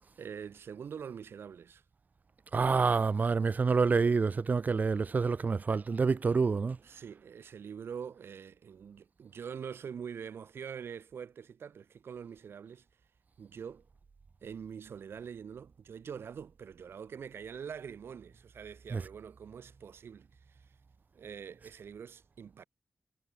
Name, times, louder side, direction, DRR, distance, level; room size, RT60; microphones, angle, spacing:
voice 1, 0.2-1.8 6.8-12.9 13.4-13.9 14.4-20.7 21.1-22.6, right 7 dB, 85° right, 3.7 m, -44 dB
voice 2, 2.5-6.8 18.9-19.0, right 4 dB, 45° right, 0.3 m, -27 dB
cardioid pair, 55°, 4 cm